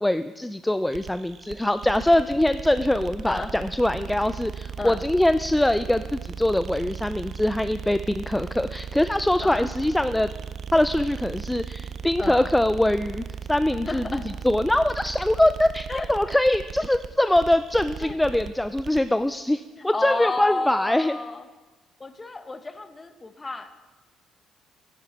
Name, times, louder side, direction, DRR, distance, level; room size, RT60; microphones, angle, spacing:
voice 1, 0.0-10.3 10.7-21.2, left 1 dB, 10° left, 12 dB, 0.3 m, -23 dB
sound 1, 0.9-19.1, right 6 dB, 55° right, 0.5 m, -37 dB
voice 2, 13.9-14.3 15.9-16.1 18.0-18.1 19.8-21.4 22.0-23.7, left 3 dB, 25° left, 10 dB, 0.8 m, -31 dB
9.7 x 9.6 x 4.1 m, 1.2 s
supercardioid pair, 75°, 0 cm